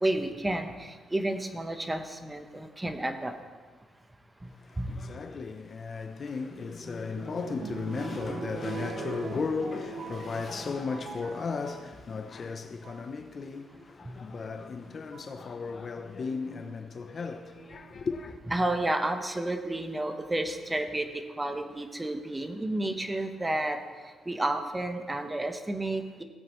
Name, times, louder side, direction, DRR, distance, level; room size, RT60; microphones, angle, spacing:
voice 1, 0.0-3.3 4.8-4.9 14.1-14.2 18.5-21.1 21.4-23.8 24.3-26.2, right 1 dB, 15° right, 1.1 m, -31 dB
voice 2, 4.6-18.4, left 4 dB, 45° left, 0.7 m, -35 dB
sound 1, 6.3-11.9 12.6-13.1 14.3-14.4 15.1-15.4 17.6-18.2 18.9-19.0 19.2-19.3, right 7 dB, 60° right, 0.8 m, -42 dB
17.0 x 8.6 x 3.1 m
cardioid pair, 90°, 0 cm